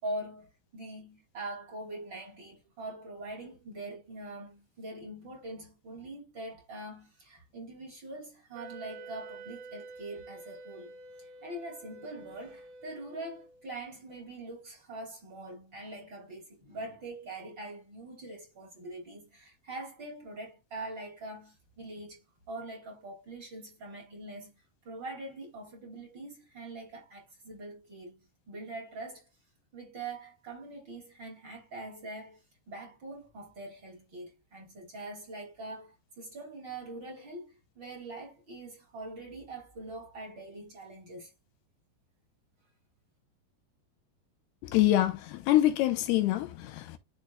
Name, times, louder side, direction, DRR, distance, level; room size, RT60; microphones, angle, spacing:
voice 1, 0.0-28.2 28.5-29.3 29.7-41.3, right 2 dB, 30° right, 3.1 m, -43 dB
Wind instrument woodwind instrument, 8.6-13.7, right 3 dB, 85° right, 3.5 m, -49 dB
voice 2, 44.7-47.0, left 14 dB, 85° left, 2.5 m, -25 dB
12.0 x 4.3 x 2.3 m
omnidirectional pair, 5.1 m